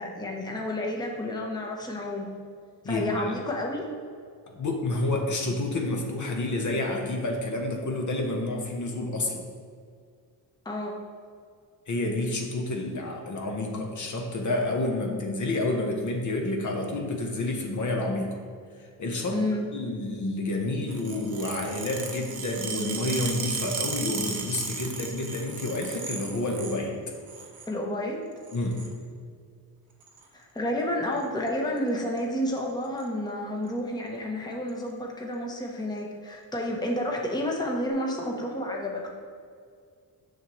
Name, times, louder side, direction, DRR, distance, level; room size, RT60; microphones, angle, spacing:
voice 1, 0.0-2.3 2.8-3.8 10.6-10.9 19.3-19.7 27.7-28.2 30.3-39.1, left 1 dB, 10° left, -1 dB, 0.9 m, -30 dB
voice 2, 2.8-3.4 4.5-9.4 11.9-18.4 18.8-19.4 19.7-27.0 28.5-28.8, left 2 dB, 45° left, 1 dB, 1.0 m, -29 dB
sound 1, 20.9-26.8 27.1-27.7 28.4-28.9 30.0-30.2 31.2-31.5 31.8-31.9 32.2-32.3 32.6-33.0 33.7-33.8 34.7-34.8, right 5 dB, 55° right, 1.0 m, -35 dB
6.5 x 6.5 x 3.1 m, 2.1 s
cardioid pair, 90°, 42 cm